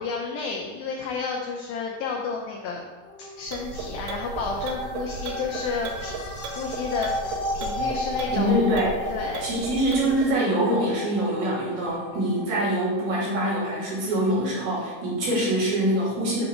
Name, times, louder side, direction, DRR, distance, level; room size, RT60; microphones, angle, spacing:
voice 1, 0.0-2.8 3.4-6.1 6.4-8.6 9.1-9.4, left 5 dB, 80° left, -1 dB, 2.1 m, -31 dB
sound 1, 3.0-14.3, left 1 dB, 60° left, 1.9 m, -35 dB
sound 2, 3.4-10.3, right 3 dB, 85° right, 3.0 m, -36 dB
voice 2, 8.3-8.9 9.4-16.4, right 1 dB, 60° right, -7 dB, 4.2 m, -24 dB
9.4 x 3.6 x 5.1 m, 1.4 s
omnidirectional pair, 5.1 m